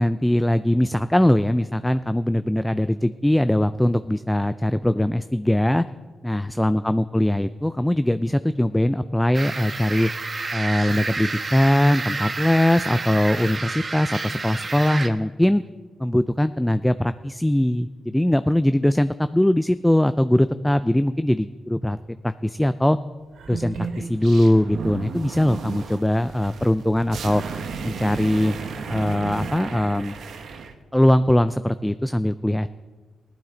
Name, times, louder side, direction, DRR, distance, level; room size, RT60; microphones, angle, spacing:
voice 1, 0.0-5.8 6.2-10.1 10.5-15.6 16.0-22.0 22.2-23.0 23.5-27.4 27.8-28.6 28.9-30.2 30.9-32.7, left 1 dB, 5° left, 12 dB, 0.3 m, -21 dB
sound 1, 9.3-15.1, right 3 dB, 40° right, 1.0 m, -30 dB
sound 2, 23.3-30.7, right 5 dB, 75° right, 1.0 m, -34 dB
15.5 x 11.5 x 3.9 m, 1.4 s
cardioid pair, 75°, 0 cm